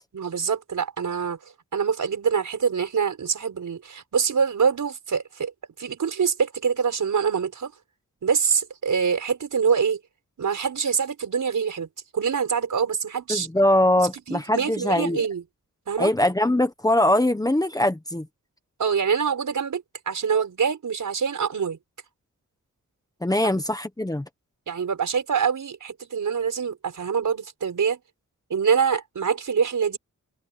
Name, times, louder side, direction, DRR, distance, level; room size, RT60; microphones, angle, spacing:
voice 1, 0.1-1.4 1.7-5.5 5.8-7.7 8.2-10.0 10.4-11.9 12.1-13.5 14.3-15.4 15.9-16.1 18.8-21.8 24.7-28.0 28.5-30.0, right 6 dB, 75° right, 5.7 m, -25 dB
voice 2, 13.3-15.2 16.0-18.3 23.2-24.2, left 1 dB, 10° left, 1.3 m, -22 dB
open air
wide cardioid pair, 160°, 32 cm